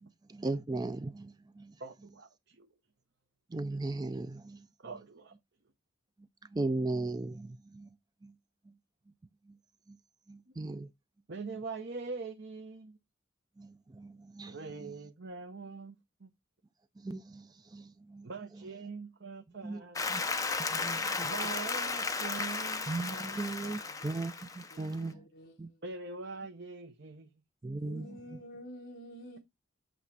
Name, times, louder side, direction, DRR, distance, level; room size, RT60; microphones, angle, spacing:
voice 1, 0.0-1.7 3.5-4.7 6.5-7.9 8.2-8.3 9.9-10.0 10.3-10.9 13.6-14.6 14.8-14.9 17.0-18.3 19.6-19.8 20.1-20.2 20.7-21.3 22.9-25.2 25.6-25.7 27.6-28.2, right 2 dB, 20° right, 0.4 m, -37 dB
voice 2, 1.8-2.7 4.8-5.3 11.3-13.0 14.5-16.3 18.2-20.0 21.2-23.9 25.8-27.3, right 4 dB, 55° right, 0.9 m, -43 dB
Applause, 20.0-25.0, left 4 dB, 15° left, 0.7 m, -34 dB
voice 3, 24.0-24.3 24.7-25.8 27.8-29.4, equal, 45° left, 1.4 m, -50 dB
8.1 x 3.1 x 6.1 m
head